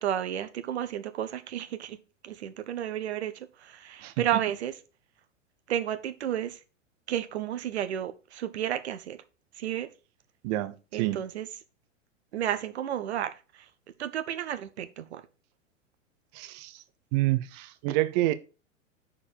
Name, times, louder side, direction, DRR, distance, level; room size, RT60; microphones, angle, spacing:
voice 1, 0.0-2.0 2.2-4.7 5.7-6.6 7.1-9.2 9.6-9.9 10.9-11.5 12.3-13.3 14.0-15.2, right 10 dB, 55° right, 1.1 m, -32 dB
voice 2, 4.0-4.4 10.4-11.2 16.3-16.8 17.1-18.3, right 16 dB, 30° right, 0.6 m, -28 dB
6.5 x 4.9 x 6.5 m
figure-of-eight pair, 95°, 39 cm